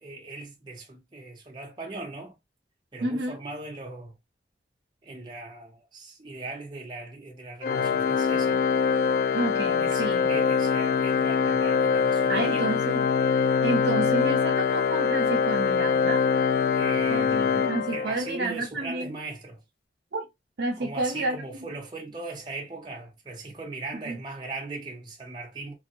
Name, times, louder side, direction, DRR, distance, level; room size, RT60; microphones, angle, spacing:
voice 1, 0.0-2.4 2.9-4.2 5.0-8.6 9.8-12.7 16.8-19.6 20.8-25.7, right 3 dB, 25° right, 0.8 m, -39 dB
voice 2, 3.0-3.4 9.3-10.3 12.3-13.0 13.6-16.2 17.1-19.2 20.1-20.2 20.6-21.7 24.1-24.2, right 2 dB, 75° right, 0.7 m, -30 dB
Organ, 7.6-18.4, left 6 dB, 55° left, 0.3 m, -24 dB
3.4 x 2.2 x 2.7 m
head